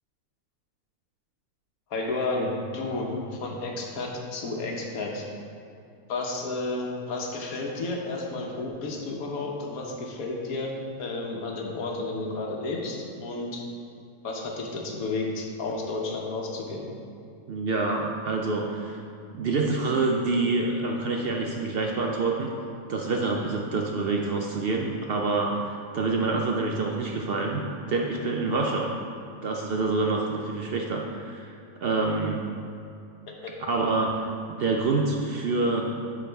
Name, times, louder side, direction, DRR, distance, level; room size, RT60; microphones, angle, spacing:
voice 1, 1.9-5.2 6.1-10.7 11.0-13.6 14.2-16.9 33.4-33.5, left 2 dB, 90° left, 0 dB, 1.4 m, -32 dB
voice 2, 17.5-19.0 19.3-22.5 22.9-27.6 27.9-28.9 29.4-31.5 31.8-32.4 33.6-35.9, right 3 dB, 60° right, 1 dB, 0.6 m, -27 dB
10.0 x 4.7 x 3.4 m, 2.6 s
omnidirectional pair, 1.5 m